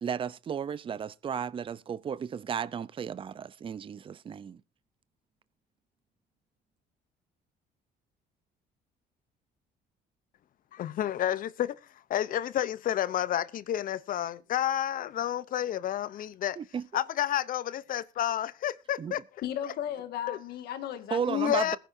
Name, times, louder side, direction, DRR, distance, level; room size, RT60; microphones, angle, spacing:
voice 1, 0.0-4.6 16.6-16.9 19.0-19.1 21.1-21.8, right 7 dB, 30° right, 0.6 m, -34 dB
voice 2, 10.7-11.8 12.1-16.6 16.9-19.2 20.3-20.4 21.3-21.8, left 11 dB, 55° left, 0.7 m, -30 dB
voice 3, 19.4-21.8, left 10 dB, 75° left, 1.8 m, -36 dB
21.0 x 10.0 x 2.7 m
cardioid pair, 110°, 17 cm